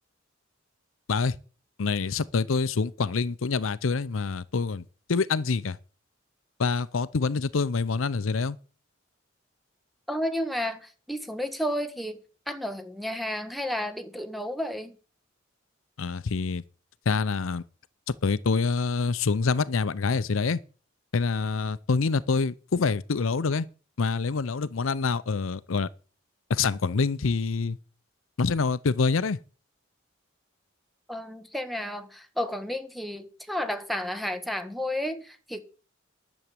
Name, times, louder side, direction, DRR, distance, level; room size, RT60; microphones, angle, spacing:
voice 1, 1.8-4.8 5.1-5.8 6.6-8.6 16.0-16.6 17.1-17.6 18.2-20.6 21.1-23.7 24.0-25.9 26.5-27.8 28.4-29.4, left 4 dB, 80° left, 0.6 m, -26 dB
voice 2, 10.1-12.2 12.5-15.0 31.1-35.6, left 1 dB, ahead, 1.5 m, -32 dB
11.0 x 7.2 x 8.6 m
head